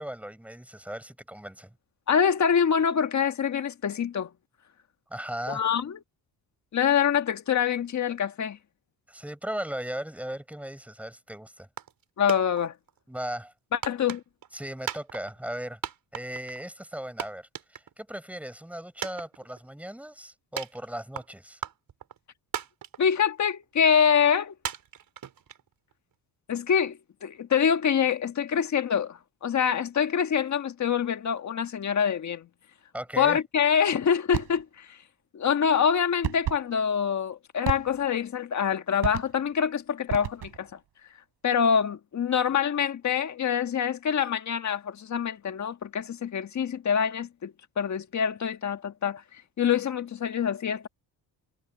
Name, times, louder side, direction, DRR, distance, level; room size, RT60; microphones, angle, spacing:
voice 1, 0.0-1.7 5.1-5.6 9.1-11.7 13.1-13.5 14.5-15.8 16.1-21.6 32.9-33.4, right 1 dB, 5° right, 6.2 m, -37 dB
voice 2, 2.1-4.3 5.5-6.0 6.7-8.6 12.2-12.7 13.7-14.2 23.0-24.5 26.5-32.5 33.2-35.0 35.3-40.7 41.4-50.9, left 7 dB, 40° left, 1.6 m, -25 dB
sound 1, 11.8-12.0 12.3-13.0 13.8-14.5 14.9-15.6 15.8-16.6 16.9-17.0 17.2-18.2 18.5-18.6 19.0-19.8 20.6-21.3 21.6-22.2 22.5-23.2 23.6-23.7 24.6-25.9, right 9 dB, 50° right, 4.7 m, -36 dB
sound 2, 34.3-34.6 36.2-36.7 37.6-38.2 39.0-39.5 40.1-40.7, right 12 dB, 70° right, 5.7 m, -32 dB
cardioid pair, 135°, 42 cm